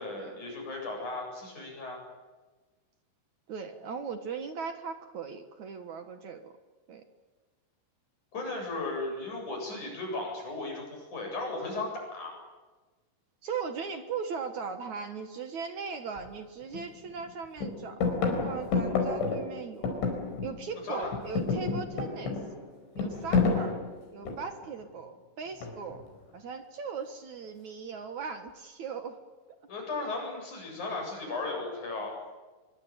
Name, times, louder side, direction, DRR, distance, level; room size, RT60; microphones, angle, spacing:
voice 1, 0.0-2.0 8.3-12.4 20.8-21.1 29.7-32.2, left 2 dB, 40° left, 1 dB, 9.1 m, -36 dB
voice 2, 3.5-6.5 6.9-7.0 13.4-20.1 20.4-22.4 23.0-23.8 24.1-26.0 26.3-29.2, right 5 dB, 60° right, 7 dB, 2.0 m, -38 dB
sound 1, 16.2-16.3 16.7-17.3 17.6-20.7 21.0-24.6 25.6-26.1, left 4 dB, 70° left, 6.9 m, -30 dB
26.0 x 24.0 x 9.1 m, 1.3 s
omnidirectional pair, 5.6 m